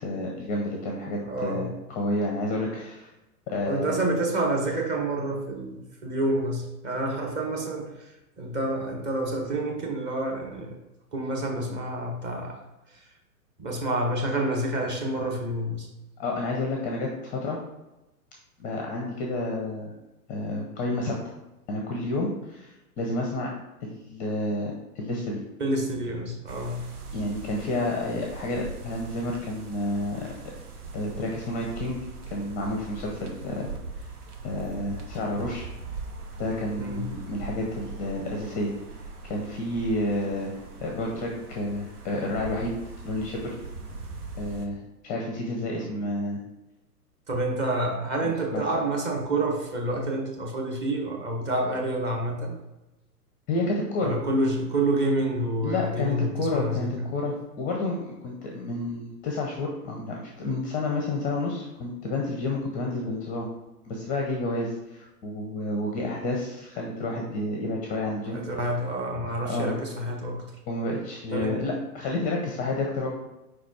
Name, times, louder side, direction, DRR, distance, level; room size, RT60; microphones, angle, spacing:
voice 1, 0.0-3.1 3.5-4.0 16.2-17.6 18.6-19.9 20.3-21.2 21.7-23.5 23.8-25.4 27.1-30.3 30.9-32.0 32.3-33.7 34.4-35.7 36.4-38.7 39.2-40.5 40.8-42.7 43.0-43.5 44.4-46.4 48.2-48.6 53.5-54.1 55.6-63.5 63.8-68.4 69.5-69.7 70.7-73.1, left 2 dB, 15° left, 0 dB, 0.6 m, -30 dB
voice 2, 1.2-1.7 3.7-10.7 11.1-12.6 12.9-13.0 13.6-15.9 25.6-26.9 36.8-37.1 47.3-52.6 54.0-57.1 68.3-70.6 71.3-71.6, right 1 dB, 20° right, 0 dB, 1.1 m, -28 dB
sound 1, 26.5-44.7, right 4 dB, 70° right, 1.1 m, -41 dB
4.8 x 4.2 x 4.6 m, 0.99 s
figure-of-eight pair, 110°, 47 cm